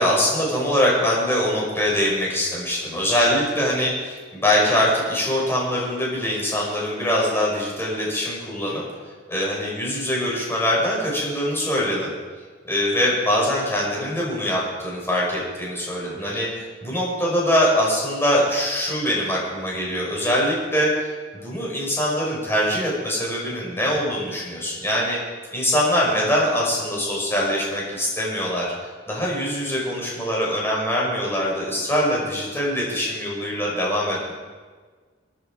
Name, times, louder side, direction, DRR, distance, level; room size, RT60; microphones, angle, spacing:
voice 1, 0.0-8.8 9.3-12.1 12.6-20.9 21.3-25.2 25.5-28.7 29.1-34.3, equal, 15° left, -4 dB, 5.6 m, -23 dB
22.0 x 10.0 x 4.8 m, 1.5 s
head